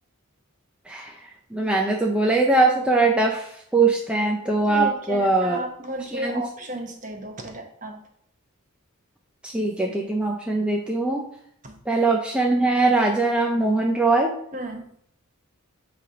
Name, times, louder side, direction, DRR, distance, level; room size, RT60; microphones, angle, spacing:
voice 1, 1.5-5.6 6.1-6.4 9.4-11.3 11.9-14.3, right 3 dB, 5° right, -1 dB, 0.5 m, -21 dB
voice 2, 4.7-8.0 11.6-11.8 14.5-14.9, right 1 dB, 35° right, 4 dB, 1.0 m, -34 dB
8.2 x 3.3 x 5.0 m, 0.67 s
head